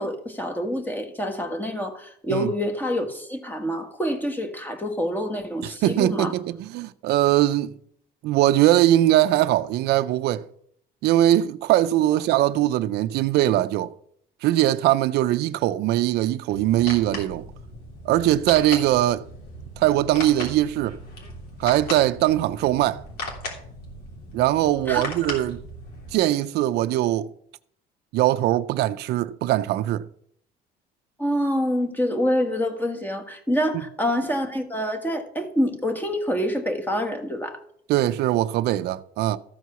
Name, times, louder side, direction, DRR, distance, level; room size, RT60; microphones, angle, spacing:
voice 1, 0.0-6.3 24.9-25.1 31.2-37.6, equal, 10° left, 1.6 m, -26 dB
voice 2, 5.6-7.7 8.2-10.4 11.0-13.9 14.4-17.5 18.1-19.2 19.8-21.0 21.6-23.0 24.3-25.6 26.1-27.3 28.1-30.0 37.9-39.4, right 14 dB, 75° right, 0.4 m, -21 dB
sound 1, 16.5-26.1, left 2 dB, 70° left, 3.1 m, -37 dB
13.5 x 4.7 x 6.8 m
cardioid pair, 110°, 17 cm